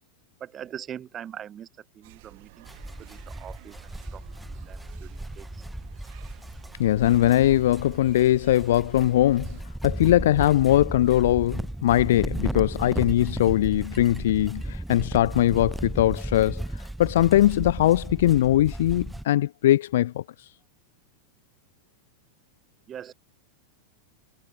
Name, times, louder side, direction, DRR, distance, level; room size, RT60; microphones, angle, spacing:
voice 1, 0.4-1.7 1.9-2.7 3.0-5.7 22.9-23.1, right 9 dB, 25° right, 6.2 m, -42 dB
sound 1, 2.0-9.6, right 24 dB, 50° right, 7.6 m, -52 dB
sound 2, 2.7-19.2, right 1 dB, 5° right, 3.9 m, -35 dB
voice 2, 6.8-9.5 9.8-16.6 17.0-20.2, left 13 dB, 55° left, 0.4 m, -21 dB
figure-of-eight pair, 90°, 0 cm